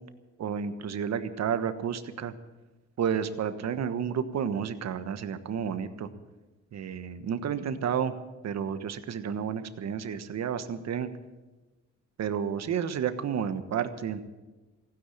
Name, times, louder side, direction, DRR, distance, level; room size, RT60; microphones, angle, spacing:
voice 1, 0.4-2.3 3.0-6.1 6.7-8.1 8.4-11.1 12.2-14.2, right 7 dB, 60° right, 10 dB, 1.3 m, -31 dB
15.5 x 10.0 x 8.6 m, 1.2 s
cardioid pair, 90°, 30 cm